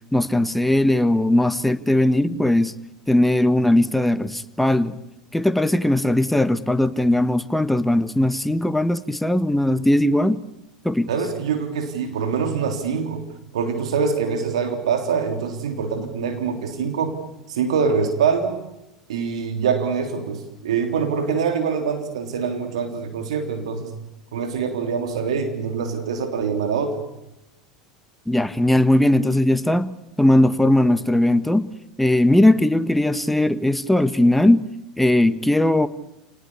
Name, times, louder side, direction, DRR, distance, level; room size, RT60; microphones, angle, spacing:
voice 1, 0.1-2.7 3.1-5.0 5.3-10.4 10.8-11.1 28.3-31.7 32.0-34.7 35.0-35.9, left 1 dB, 5° left, 11 dB, 1.5 m, -19 dB
voice 2, 11.1-13.3 13.5-17.2 17.5-18.6 19.1-23.9 24.3-27.1, right 6 dB, 75° right, 6 dB, 3.4 m, -24 dB
29.5 x 19.5 x 8.5 m, 0.91 s
hypercardioid pair, 80°, 3 cm